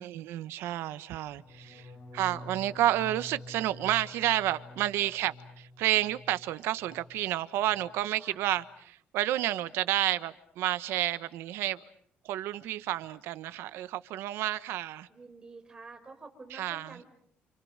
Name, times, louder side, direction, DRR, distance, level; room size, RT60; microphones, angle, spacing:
voice 1, 0.0-11.8 12.2-15.1 16.5-17.0, right 14 dB, 85° right, 13 dB, 1.3 m, -30 dB
sound 1, 1.3-7.2 7.5-8.0 8.3-8.7, left 2 dB, 50° left, 5.8 m, -49 dB
voice 2, 15.1-17.1, right 3 dB, 20° right, 6 dB, 4.8 m, -49 dB
29.5 x 29.0 x 6.6 m, 0.68 s
cardioid pair, 160°, 4 cm